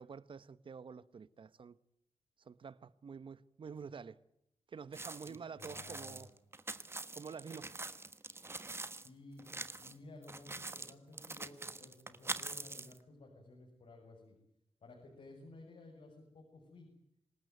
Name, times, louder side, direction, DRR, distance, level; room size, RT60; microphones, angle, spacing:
voice 1, 0.0-1.8 2.4-4.2 4.7-6.3 7.1-7.8, right 6 dB, 55° right, 1.0 m, -48 dB
sound 1, 4.9-9.1 9.4-9.9 10.2-13.0, right 3 dB, 25° right, 1.3 m, -44 dB
voice 2, 5.3-6.3 8.9-9.4 9.8-14.4 14.8-16.9, left 2 dB, 70° left, 7.0 m, -55 dB
27.0 x 19.0 x 9.5 m
wide cardioid pair, 125°, 10 cm